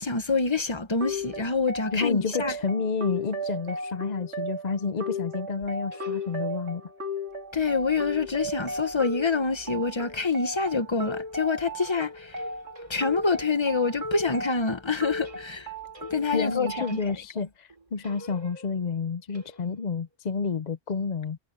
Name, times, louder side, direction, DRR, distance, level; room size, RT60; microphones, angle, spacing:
voice 1, 0.0-2.5 7.5-12.4 12.9-15.7 16.0-17.0, left 4 dB, 25° left, 1.1 m, -26 dB
sound 1, 1.0-17.0, left 1 dB, 80° right, 3.3 m, -35 dB
voice 2, 1.9-6.8 16.3-21.4, left 5 dB, 45° left, 0.7 m, -30 dB
sound 2, 5.6-6.9 11.9-14.3 15.2-16.5 16.9-17.4 17.7-20.0, right 1 dB, 30° right, 3.5 m, -50 dB
omnidirectional pair, 1.1 m